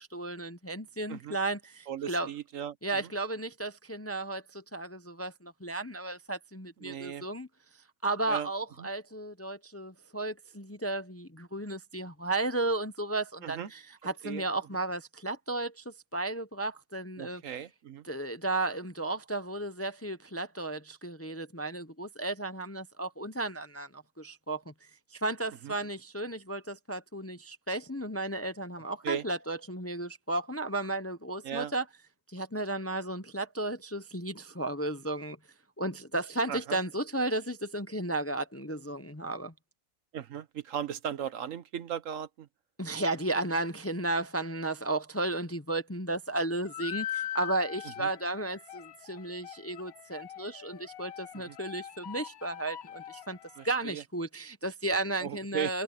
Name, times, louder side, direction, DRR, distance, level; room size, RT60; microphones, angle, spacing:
voice 1, 0.0-2.3 2.8-7.5 8.0-17.4 18.0-24.7 25.1-31.9 32.3-35.4 35.8-39.5 42.8-53.4 53.6-55.8, right 2 dB, 15° left, 0.6 m, -34 dB
voice 2, 1.9-3.1 6.8-7.2 8.3-8.5 8.8-8.9 13.4-13.7 14.2-14.4 17.2-18.0 25.6-25.7 29.0-29.2 31.4-31.7 36.5-36.8 40.1-42.5 48.0-48.1 51.5-51.6 53.6-54.0 55.2-55.7, right 8 dB, 70° right, 1.2 m, -37 dB
sound 1, 46.7-53.7, left 11 dB, 85° left, 1.2 m, -42 dB
omnidirectional pair, 1.5 m